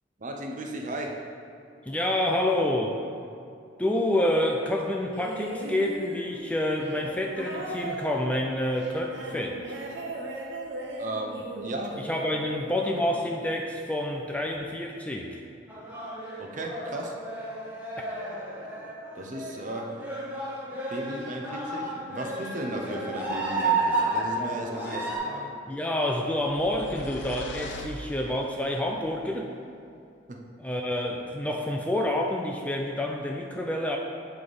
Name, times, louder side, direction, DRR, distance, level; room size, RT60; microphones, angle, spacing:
voice 1, 0.2-1.2 11.0-12.0 16.4-17.2 19.2-20.0 20.9-25.5 30.3-30.4, right 1 dB, 45° right, 1 dB, 0.7 m, -35 dB
voice 2, 1.8-3.0 3.8-9.6 12.0-15.4 25.7-29.5 30.6-34.0, left 1 dB, 10° left, 0 dB, 0.4 m, -28 dB
sound 1, 5.1-13.5 14.5-14.6, right 1 dB, 70° right, 0.9 m, -38 dB
sound 2, 15.7-25.2, right 2 dB, 10° right, 1.1 m, -32 dB
sound 3, 26.3-28.7, left 1 dB, 75° left, 0.6 m, -41 dB
8.0 x 3.4 x 5.4 m, 2.5 s
head